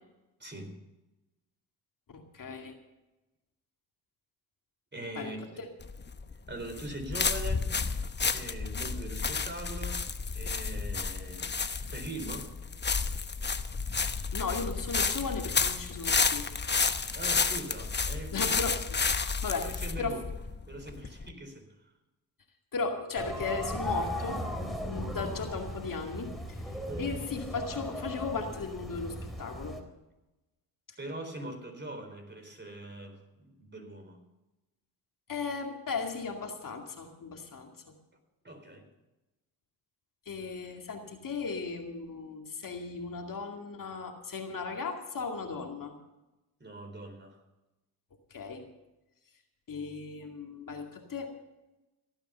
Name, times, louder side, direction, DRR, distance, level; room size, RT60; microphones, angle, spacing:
voice 1, 0.4-0.8 4.9-5.4 6.5-7.7 8.3-10.0 10.3-11.5 11.9-12.5 17.1-18.4 19.6-20.2 20.7-21.7 26.8-27.1 31.0-34.2 38.4-38.9 46.6-47.4, right 1 dB, 25° right, 5 dB, 4.2 m, -41 dB
voice 2, 2.1-2.8 5.2-5.3 5.6-5.7 14.3-16.5 18.3-19.0 19.4-20.2 22.7-29.8 30.9-31.0 35.3-37.7 40.3-46.0 48.3-48.6 49.7-51.3, left 4 dB, 50° left, 3 dB, 2.3 m, -36 dB
sound 1, 5.8-21.3, left 5 dB, 25° left, 1.0 m, -31 dB
sound 2, 23.2-29.8, equal, ahead, 3.4 m, -37 dB
16.5 x 9.0 x 6.9 m, 1.0 s
supercardioid pair, 60°, 41 cm